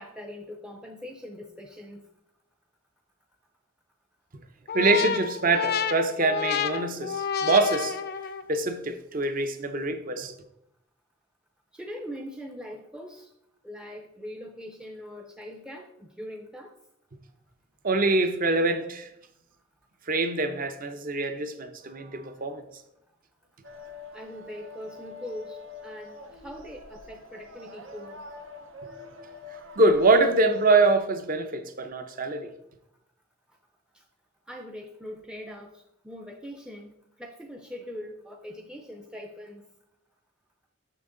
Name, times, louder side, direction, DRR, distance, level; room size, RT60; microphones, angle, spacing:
voice 1, 0.0-2.0 11.7-13.3 13.6-16.7 24.1-26.2 26.4-28.2 33.9-34.0 34.5-36.9 37.2-39.7, equal, 5° right, 0.5 m, -41 dB
sound 1, 4.7-8.6, left 7 dB, 55° left, 0.4 m, -29 dB
voice 2, 4.7-8.0 8.5-10.3 17.8-19.1 20.1-22.6 29.8-32.5, right 2 dB, 45° right, 0.7 m, -24 dB
sound 2, 23.6-31.0, left 3 dB, 85° right, 0.9 m, -45 dB
6.3 x 6.1 x 3.8 m
head